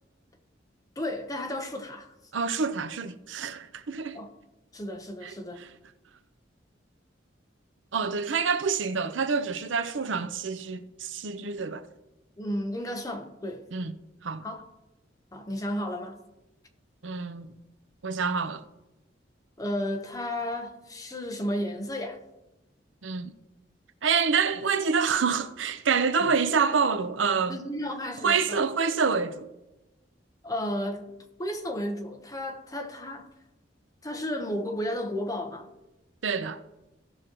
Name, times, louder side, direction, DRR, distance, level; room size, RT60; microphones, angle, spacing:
voice 1, 1.0-2.1 4.1-4.3 4.7-5.6 12.4-13.7 14.4-14.6 15.3-16.2 19.6-22.2 26.2-26.3 27.5-28.6 30.4-33.3 34.0-35.7, left 1 dB, 20° left, 1.0 m, -33 dB
voice 2, 2.3-4.2 5.2-5.7 7.9-11.9 13.7-13.9 14.2-14.4 17.0-17.5 18.0-18.6 23.0-23.3 24.0-27.6 28.2-29.5 36.2-36.6, right 5 dB, 90° right, 0.6 m, -27 dB
16.5 x 6.3 x 3.0 m
head